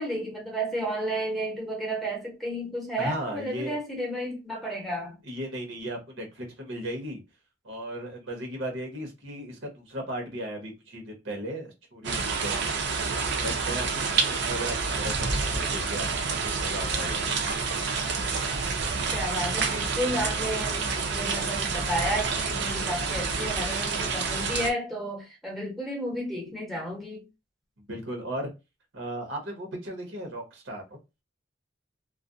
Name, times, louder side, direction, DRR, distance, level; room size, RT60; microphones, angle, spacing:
voice 1, 0.0-5.2 19.1-27.2, equal, ahead, 0.7 m, -32 dB
voice 2, 3.0-3.8 5.3-7.2 7.6-12.7 13.4-17.3 27.8-28.5 28.9-31.0, right 1 dB, 85° right, 1.0 m, -36 dB
sound 1, 12.0-24.7, right 4 dB, 60° right, 0.5 m, -28 dB
2.4 x 2.0 x 2.5 m
head